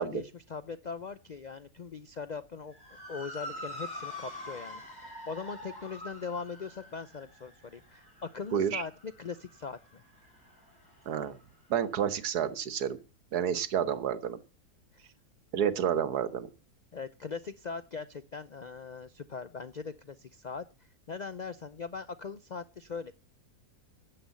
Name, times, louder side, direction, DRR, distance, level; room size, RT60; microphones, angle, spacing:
voice 1, 0.0-2.7 3.1-10.0 16.9-20.6 21.1-23.1, left 5 dB, 70° left, 13 dB, 0.4 m, -40 dB
Motor vehicle (road) / Siren, 2.7-11.3, left 1 dB, 15° left, 6.4 m, -45 dB
voice 2, 8.5-8.8 11.1-11.3 11.7-13.0 13.3-14.4 15.5-16.5, right 8 dB, 90° right, 13 dB, 1.6 m, -29 dB
10.0 x 7.8 x 8.3 m, 0.36 s
omnidirectional pair, 1.6 m